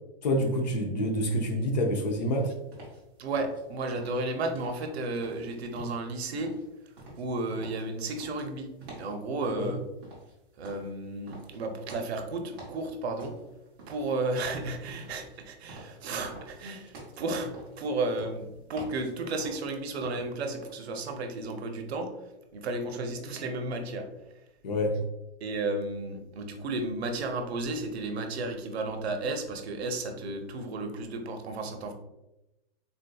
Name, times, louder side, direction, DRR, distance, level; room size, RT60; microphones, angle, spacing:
voice 1, 0.2-2.6 9.6-9.7 24.6-25.0, equal, 45° left, 2 dB, 0.5 m, -27 dB
sound 1, 2.2-20.4, right 1 dB, 20° right, 0.6 m, -49 dB
voice 2, 3.2-6.5 7.2-8.7 9.0-9.8 10.6-13.3 13.9-22.1 22.5-24.1 25.4-31.9, right 2 dB, 80° right, 5 dB, 0.7 m, -33 dB
3.7 x 2.6 x 2.2 m, 0.95 s
hypercardioid pair, 175°, 32 cm